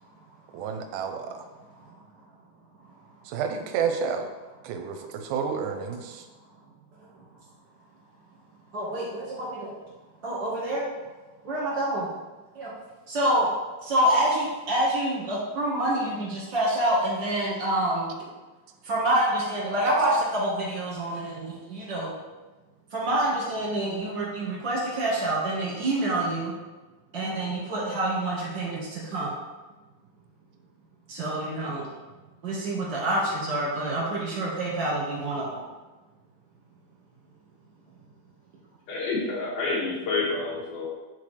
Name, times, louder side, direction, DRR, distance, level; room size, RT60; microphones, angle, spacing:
voice 1, 0.5-1.5 3.3-4.3 4.6-6.2, right 6 dB, 80° right, 6 dB, 1.9 m, -30 dB
voice 2, 8.7-9.7 10.2-10.8 11.4-12.1 12.5-12.7 13.1-13.5 13.8-18.1 18.8-22.1 22.9-26.5 27.1-29.3 31.1-31.9 32.4-35.6, right 1 dB, 50° right, -5 dB, 1.5 m, -27 dB
voice 3, 38.9-40.9, left 3 dB, 90° left, -5 dB, 3.4 m, -28 dB
8.4 x 4.2 x 3.3 m, 1.2 s
omnidirectional pair, 4.2 m